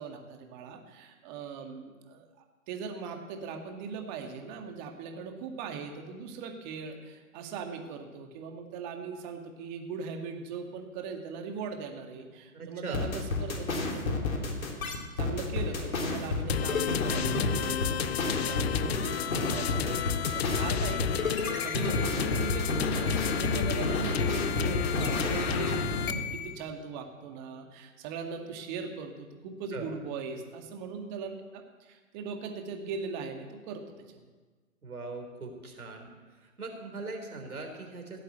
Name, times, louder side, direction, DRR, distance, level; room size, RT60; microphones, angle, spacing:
voice 1, 0.0-2.3 2.7-14.3 15.2-34.2, right 5 dB, 30° right, 3 dB, 2.0 m, -40 dB
voice 2, 12.5-13.0 29.7-29.9 34.8-36.1 36.4-38.2, right 3 dB, 80° right, 2 dB, 3.8 m, -40 dB
sound 1, 12.9-26.5, left 3 dB, 70° left, 3.2 m, -30 dB
sound 2, 16.5-26.1, left 10 dB, 50° left, 0.4 m, -33 dB
16.0 x 8.0 x 8.0 m, 1.4 s
hypercardioid pair, 130°, 43 cm